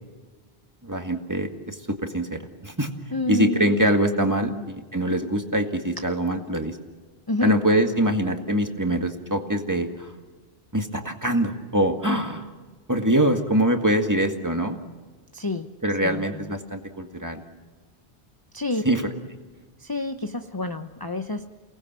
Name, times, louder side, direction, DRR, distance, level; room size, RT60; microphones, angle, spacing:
voice 1, 0.8-2.9 3.3-6.8 7.4-10.1 10.7-12.5 12.9-14.8 15.8-17.4 18.9-19.0, right 1 dB, 15° right, 4 dB, 1.9 m, -24 dB
voice 2, 3.1-3.7 4.4-4.7 7.3-7.5 15.3-15.7 16.0-16.5 18.5-18.8 19.8-21.4, left 2 dB, 25° left, 6 dB, 0.8 m, -29 dB
29.0 x 19.0 x 7.5 m, 1.4 s
omnidirectional pair, 1.1 m